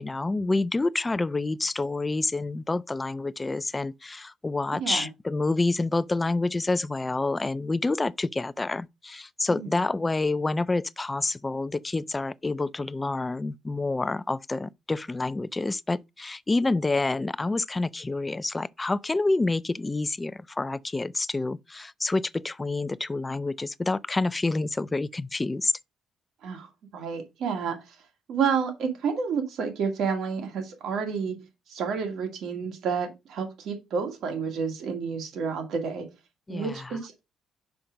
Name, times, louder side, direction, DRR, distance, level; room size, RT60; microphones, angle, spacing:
voice 1, 0.0-25.7 36.5-36.9, left 2 dB, 20° left, 0.4 m, -28 dB
voice 2, 9.5-9.8 26.4-28.0 28.3-31.4 31.7-36.1 36.5-37.2, right 6 dB, 75° right, 2.1 m, -30 dB
5.9 x 5.2 x 5.1 m
cardioid pair, 90°, 0 cm